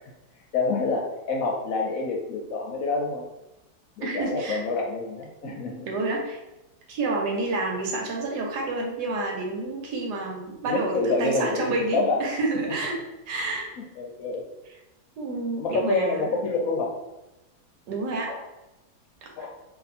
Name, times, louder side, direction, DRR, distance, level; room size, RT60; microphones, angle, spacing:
voice 1, 0.5-3.2 4.0-5.9 10.6-12.2 14.0-14.4 15.6-17.0 18.3-18.4 19.4-19.5, left 3 dB, 70° left, 1 dB, 0.9 m, -27 dB
voice 2, 4.0-4.6 5.4-6.4 6.9-13.0 13.3-13.7 15.2-16.3 17.9-18.3 19.4-19.5, right 2 dB, 85° right, 0 dB, 1.4 m, -29 dB
2.8 x 2.6 x 4.1 m, 0.98 s
omnidirectional pair, 1.7 m